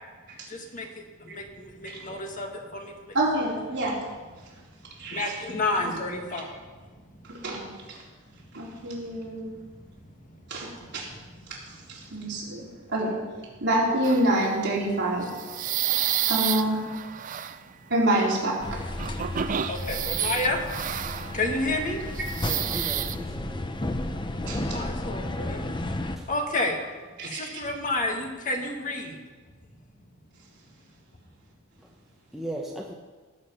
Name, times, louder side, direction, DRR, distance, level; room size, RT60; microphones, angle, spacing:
voice 1, 0.5-0.9 1.2-3.1 5.1-6.6 19.7-20.6 21.3-22.0 24.7-25.6 26.3-26.8 27.2-29.2, left 2 dB, 40° left, 3 dB, 1.6 m, -30 dB
voice 2, 3.1-4.0 5.0-5.4 5.7-5.9 7.4-8.0 8.5-9.5 10.5-11.1 11.7-13.2 13.6-15.4 16.3-16.8 17.9-18.8 22.4-22.6 24.5-24.8 27.2-27.6, right 1 dB, 55° right, -5 dB, 4.1 m, -27 dB
sound 1, 14.0-14.6 15.2-17.6 18.1-18.4 19.0-21.6 22.1-23.2, right 10 dB, 40° right, 0.4 m, -30 dB
sound 2, 18.6-26.2, left 1 dB, 20° left, 0.7 m, -33 dB
voice 3, 22.4-23.6 32.3-32.9, right 1 dB, ahead, -2 dB, 1.0 m, -36 dB
18.0 x 8.1 x 5.6 m, 1.3 s
head